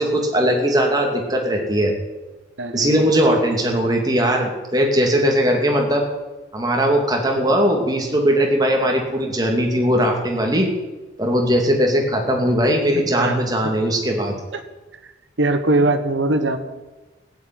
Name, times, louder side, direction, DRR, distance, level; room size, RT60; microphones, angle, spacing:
voice 1, 0.0-1.9 2.7-6.1 6.5-10.7 11.2-14.4, equal, 20° right, 1 dB, 2.7 m, -19 dB
voice 2, 2.6-3.3 12.9-13.4 13.6-13.7 14.5-14.6 15.0-15.1 15.4-16.6, right 2 dB, 80° right, 7 dB, 1.4 m, -21 dB
15.5 x 8.7 x 9.6 m, 1.2 s
head